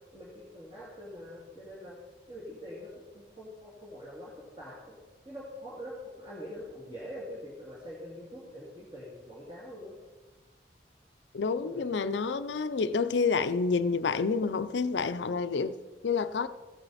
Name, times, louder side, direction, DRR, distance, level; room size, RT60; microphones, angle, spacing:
voice 1, 0.1-2.0 2.3-4.3 4.6-5.0 5.2-10.0 11.6-11.9, equal, 25° right, 2.4 m, -44 dB
voice 2, 11.3-16.5, left 4 dB, 90° left, 0.5 m, -29 dB
15.0 x 8.8 x 4.1 m
head